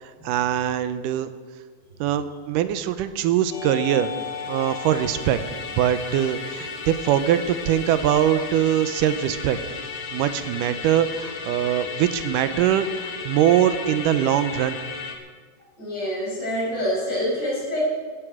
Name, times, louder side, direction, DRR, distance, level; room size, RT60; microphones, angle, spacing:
voice 1, 0.0-1.3 2.0-4.1 4.5-5.4 5.8-9.6 10.1-14.8, right 10 dB, 80° right, 11 dB, 2.3 m, -22 dB
Musical instrument, 3.5-15.2, left 5 dB, 50° left, 1.9 m, -34 dB
voice 2, 15.8-17.8, equal, 30° left, -5 dB, 6.3 m, -26 dB
16.5 x 13.0 x 4.9 m, 1.5 s
omnidirectional pair, 3.8 m